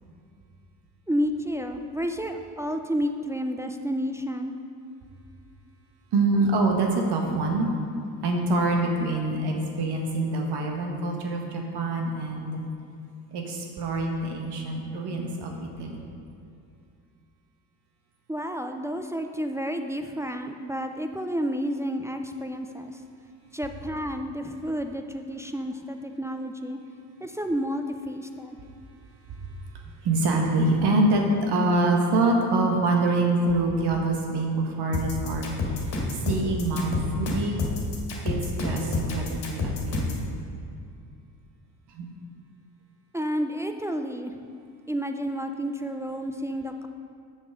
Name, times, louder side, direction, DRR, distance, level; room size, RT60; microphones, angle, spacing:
voice 1, 1.1-4.6 18.3-23.0 23.5-26.8 27.2-28.6 43.1-44.3 44.9-46.9, equal, 5° right, 5 dB, 0.3 m, -30 dB
voice 2, 6.1-7.7 8.2-12.6 13.3-16.0 30.0-35.5 36.2-37.6 38.2-40.4 41.9-42.1, right 2 dB, 55° right, 2 dB, 1.6 m, -25 dB
sound 1, 34.9-40.2, left 3 dB, 50° left, 2.2 m, -29 dB
7.5 x 6.5 x 5.1 m, 2.5 s
hypercardioid pair, 70°, 48 cm